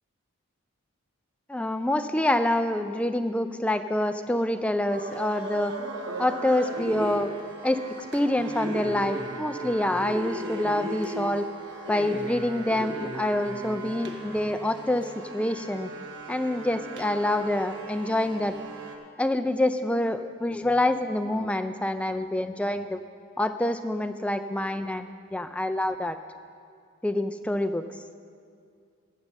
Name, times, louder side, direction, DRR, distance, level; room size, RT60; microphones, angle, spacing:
voice 1, 1.5-5.7 6.2-7.3 7.6-7.8 8.1-11.5 11.9-15.9 16.3-18.6 19.2-23.0 23.4-26.2 27.0-27.8, left 1 dB, 5° left, 9 dB, 0.3 m, -26 dB
sound 1, 4.9-19.0, right 2 dB, 55° right, 1.1 m, -37 dB
14.5 x 6.6 x 7.3 m, 2.3 s
head